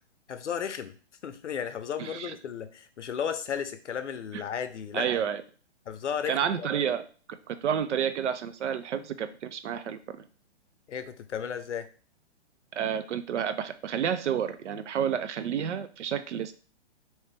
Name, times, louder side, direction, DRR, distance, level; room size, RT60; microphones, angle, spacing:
voice 1, 0.3-0.9 1.2-5.1 5.9-6.7 10.9-11.9, left 8 dB, 90° left, 10 dB, 0.6 m, -34 dB
voice 2, 2.0-2.3 4.3-4.4 4.9-5.4 6.3-7.1 7.5-10.2 12.7-16.5, right 8 dB, 80° right, 11 dB, 0.6 m, -30 dB
3.0 x 2.8 x 3.3 m, 0.39 s
hypercardioid pair, 140°, 35 cm